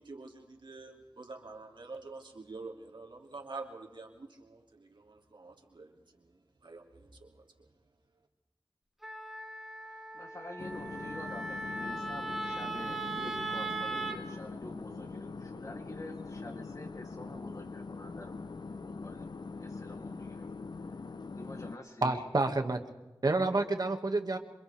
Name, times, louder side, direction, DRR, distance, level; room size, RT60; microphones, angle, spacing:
voice 1, 0.0-7.7, right 3 dB, 75° right, 1 dB, 2.8 m, -47 dB
Wind instrument woodwind instrument, 9.0-14.2, right 2 dB, 5° right, 2.1 m, -38 dB
voice 2, 9.8-18.4 18.7-20.5 20.8-20.9 21.3-22.3, left 1 dB, 45° left, 1 dB, 3.0 m, -47 dB
sound 1, 10.6-21.8, left 4 dB, 65° left, 0.7 m, -43 dB
voice 3, 22.0-22.8 23.2-24.4, right 2 dB, 55° right, 5 dB, 2.1 m, -29 dB
27.5 x 26.5 x 3.5 m, 1.1 s
wide cardioid pair, 70°, 8 cm